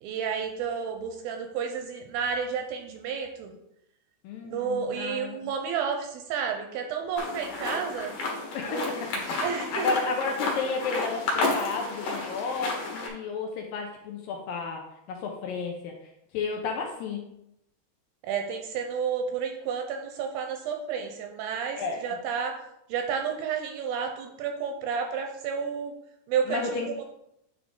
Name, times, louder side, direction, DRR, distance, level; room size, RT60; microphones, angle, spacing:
voice 1, 0.0-3.5 4.4-8.1 8.6-9.0 9.4-9.9 18.2-22.6 22.9-25.9 26.3-26.8, right 6 dB, 80° right, 4 dB, 2.2 m, -31 dB
voice 2, 4.2-5.5 8.5-14.8 15.1-15.9 16.3-17.3 21.8-22.0 26.5-26.9, left 4 dB, 80° left, 1 dB, 2.1 m, -32 dB
sound 1, 7.2-13.1, left 3 dB, 60° left, 2.7 m, -31 dB
9.3 x 3.7 x 3.7 m, 0.81 s
omnidirectional pair, 4.6 m